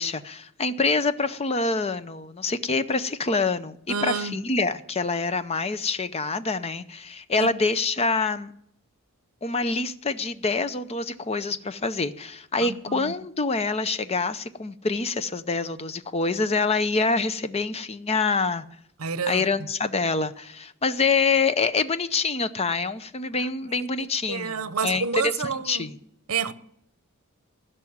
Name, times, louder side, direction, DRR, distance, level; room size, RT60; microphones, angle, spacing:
voice 1, 0.0-8.5 9.4-18.6 19.3-26.0, left 4 dB, 30° left, 0.6 m, -26 dB
voice 2, 3.9-4.4 7.4-7.5 12.6-13.1 19.0-19.4 24.3-25.9 26.3-26.5, right 5 dB, 75° right, 0.8 m, -29 dB
15.5 x 6.1 x 9.4 m
head